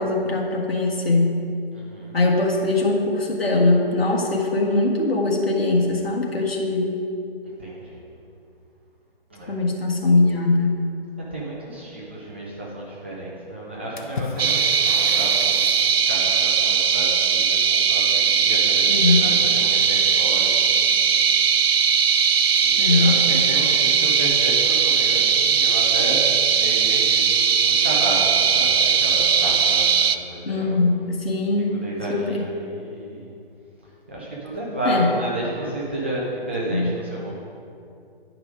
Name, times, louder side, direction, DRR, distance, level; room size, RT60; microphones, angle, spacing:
voice 1, 0.0-1.4 2.1-7.0 9.5-10.8 18.9-19.2 22.8-23.2 30.4-31.7 32.1-32.4 34.8-35.1 36.7-36.9, left 2 dB, 70° left, -2 dB, 1.8 m, -21 dB
voice 2, 1.7-2.2 7.4-8.0 9.3-9.6 11.3-15.7 15.9-21.3 22.5-30.8 31.8-33.3 34.1-37.4, right 1 dB, 10° right, -6 dB, 0.5 m, -32 dB
Water / Splash splatter, 14.0-16.0, left 4 dB, 50° left, 0.8 m, -35 dB
sound 1, 14.4-30.2, right 6 dB, 70° right, 0.5 m, -19 dB
10.0 x 4.9 x 5.0 m, 2.5 s
figure-of-eight pair, 145°, 31 cm